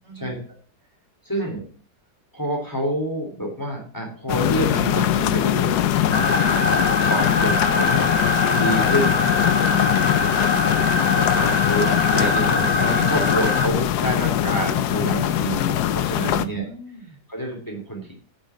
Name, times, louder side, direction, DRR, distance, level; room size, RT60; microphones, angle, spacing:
voice 1, 0.0-0.4 1.3-1.6 6.5-6.9 10.0-11.0 16.4-17.2, right 1 dB, 35° right, 3 dB, 4.0 m, -42 dB
voice 2, 1.3-1.6 2.3-8.1 8.5-9.2 9.7-9.9 11.2-16.7 17.3-18.1, right 1 dB, 10° left, 0 dB, 3.7 m, -28 dB
sound 1, 4.3-16.5, left 12 dB, 70° left, 1.2 m, -22 dB
sound 2, 6.1-13.7, left 2 dB, 25° left, 1.2 m, -23 dB
12.0 x 6.5 x 7.7 m, 0.42 s
omnidirectional pair, 1.9 m